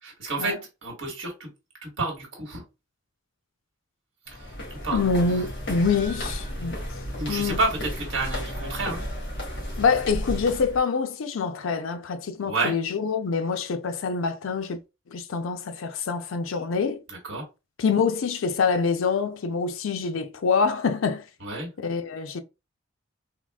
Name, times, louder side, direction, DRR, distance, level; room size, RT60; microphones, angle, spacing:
voice 1, 0.0-0.5 0.8-1.5 1.8-2.6 4.3-5.4 7.0-9.0 12.5-12.7 17.1-17.5 21.4-21.7, right 2 dB, 70° right, 1.4 m, -30 dB
sound 1, 4.3-10.8, equal, 65° left, 1.5 m, -33 dB
voice 2, 4.9-6.8 7.3-7.6 9.8-14.8 15.1-17.0 17.8-21.2 21.8-22.4, left 5 dB, 85° left, 0.5 m, -25 dB
3.7 x 2.3 x 2.3 m
head